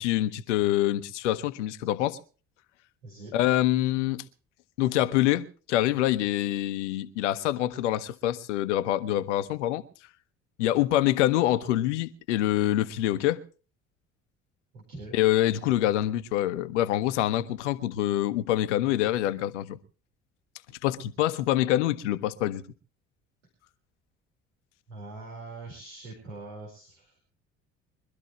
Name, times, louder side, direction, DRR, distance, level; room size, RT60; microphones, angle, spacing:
voice 1, 0.0-2.2 3.3-4.2 4.8-9.8 10.6-13.4 15.1-19.8 20.8-22.6, left 13 dB, 75° left, 1.0 m, -25 dB
voice 2, 14.7-15.2 24.9-27.2, right 2 dB, 75° right, 4.6 m, -43 dB
23.5 x 13.0 x 3.1 m
figure-of-eight pair, 55°, 36 cm